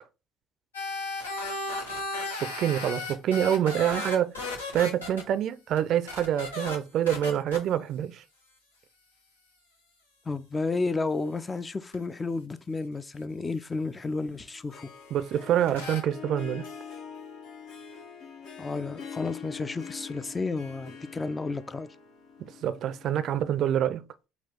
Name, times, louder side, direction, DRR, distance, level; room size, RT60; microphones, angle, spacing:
sound 1, 0.7-5.2 5.8-5.9 6.1-6.8 7.1-7.6 11.9-12.0 15.7-16.0, left 2 dB, 90° left, 1.0 m, -34 dB
voice 1, 2.4-8.2 15.1-16.7 22.6-24.0, right 10 dB, 55° right, 0.4 m, -26 dB
voice 2, 10.3-14.9 18.6-21.9, left 3 dB, 25° left, 0.4 m, -32 dB
Harp, 14.5-23.4, left 6 dB, 60° left, 0.9 m, -44 dB
4.1 x 2.3 x 4.4 m
hypercardioid pair, 60°, 0 cm